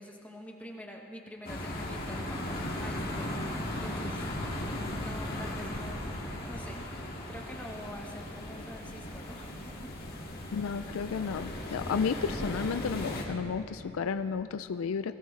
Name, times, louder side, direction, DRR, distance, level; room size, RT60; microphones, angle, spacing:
voice 1, 0.0-6.8 7.3-9.9, equal, 5° left, -1 dB, 1.1 m, -46 dB
sound 1, 1.4-13.2, left 1 dB, 45° left, 2.0 m, -37 dB
voice 2, 10.5-15.1, left 6 dB, 85° left, 11 dB, 0.4 m, -32 dB
21.0 x 17.0 x 3.2 m, 2.8 s
head